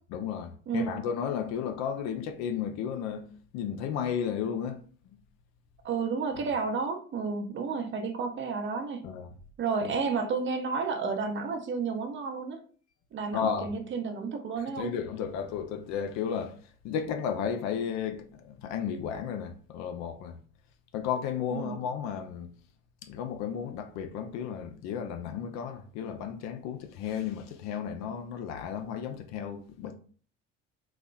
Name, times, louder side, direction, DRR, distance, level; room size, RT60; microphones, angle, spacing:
voice 1, 0.1-4.8 9.0-9.3 9.8-10.0 13.3-13.7 14.8-16.6 16.8-20.4 20.9-22.5 23.0-29.9, left 7 dB, 45° left, 0.6 m, -33 dB
voice 2, 5.8-9.0 9.6-12.6 13.1-14.9 21.5-21.8, right 5 dB, 30° right, 0.7 m, -31 dB
4.0 x 2.8 x 2.3 m
figure-of-eight pair, 65°, 39 cm